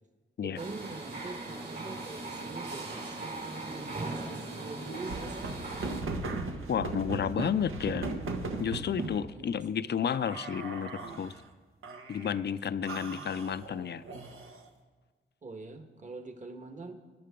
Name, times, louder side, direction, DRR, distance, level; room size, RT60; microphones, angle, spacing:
voice 1, 0.4-6.0 9.3-9.9 15.4-16.9, right 3 dB, 35° right, 5 dB, 1.6 m, -45 dB
sound 1, 0.6-6.0, right 2 dB, 55° right, 4.8 m, -39 dB
sound 2, 4.8-9.2 10.1-11.4 11.8-12.4 12.9-14.7, right 3 dB, 90° right, 1.4 m, -38 dB
voice 2, 6.7-8.1 8.6-11.3 12.1-14.0, left 8 dB, 55° left, 15 dB, 0.5 m, -31 dB
22.5 x 10.5 x 3.8 m, 1.5 s
cardioid pair, 70°, 21 cm